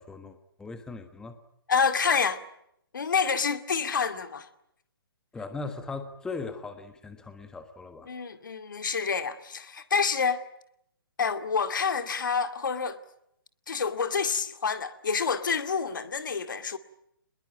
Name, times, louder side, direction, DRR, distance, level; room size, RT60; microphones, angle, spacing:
voice 1, 0.0-1.3 5.3-8.1, left 3 dB, 5° left, 1.4 m, -39 dB
voice 2, 1.7-2.4 2.9-4.5 8.1-10.4 11.2-13.0 13.7-16.8, left 5 dB, 55° left, 2.3 m, -28 dB
28.5 x 21.5 x 8.5 m
figure-of-eight pair, 130°, 13 cm